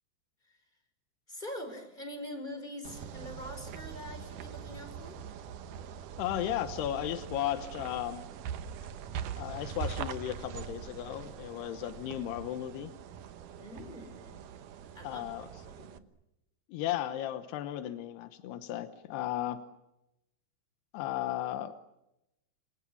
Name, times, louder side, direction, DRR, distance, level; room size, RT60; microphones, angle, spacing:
voice 1, 1.3-5.2 13.5-14.4 14.9-15.4 15.7-15.9, left 1 dB, 10° left, 7 dB, 5.1 m, -44 dB
sound 1, 2.8-16.0, right 8 dB, 65° right, 2.4 m, -42 dB
voice 2, 6.2-8.3 9.4-12.9 15.0-15.5 16.7-19.6 20.9-21.7, left 12 dB, 85° left, 10 dB, 3.2 m, -35 dB
29.5 x 25.0 x 7.1 m, 0.90 s
omnidirectional pair, 4.6 m